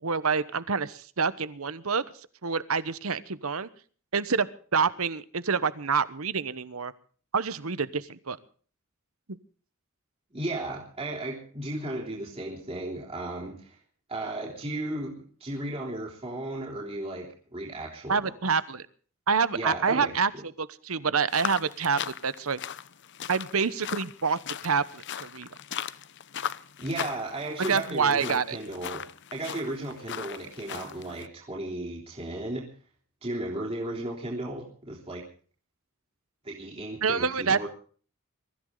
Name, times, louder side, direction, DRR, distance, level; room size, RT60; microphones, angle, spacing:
voice 1, 0.0-2.0 2.4-3.7 4.1-4.5 4.7-6.9 7.3-8.4 18.1-18.9 19.3-22.6 23.3-25.5 27.7-28.6 37.0-37.7, right 5 dB, 75° right, 16 dB, 1.1 m, -27 dB
voice 2, 10.3-13.8 14.1-18.3 19.5-20.1 26.8-29.0 29.3-32.6 33.2-35.2 36.4-37.7, right 1 dB, 30° right, -2 dB, 3.4 m, -35 dB
sound 1, 21.3-31.3, left 8 dB, 55° left, 0.8 m, -38 dB
23.0 x 14.5 x 3.9 m, 0.43 s
head